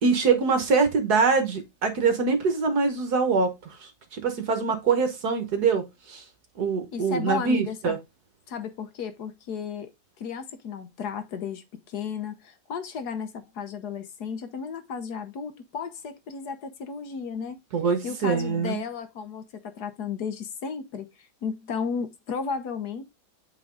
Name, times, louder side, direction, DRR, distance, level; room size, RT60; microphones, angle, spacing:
voice 1, 0.0-6.2 6.6-8.0 17.7-18.8, right 5 dB, 60° right, 1.6 m, -24 dB
voice 2, 6.9-8.0 8.5-9.9 10.2-17.6 18.0-19.4 19.8-23.0, left 6 dB, 65° left, 1.4 m, -34 dB
8.2 x 3.7 x 3.8 m
omnidirectional pair, 2.0 m